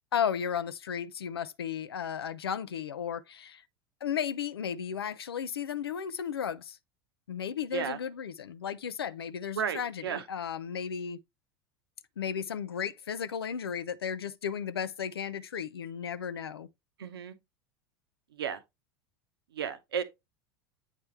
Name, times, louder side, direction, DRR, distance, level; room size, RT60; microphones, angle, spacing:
voice 1, 0.1-3.6 4.0-6.8 7.3-11.2 12.2-16.7, left 8 dB, 90° left, 0.5 m, -34 dB
voice 2, 9.6-10.2 17.0-17.3 18.4-18.6 19.5-20.0, right 7 dB, 80° right, 0.9 m, -33 dB
8.2 x 4.3 x 3.2 m
hypercardioid pair, 85°, 12 cm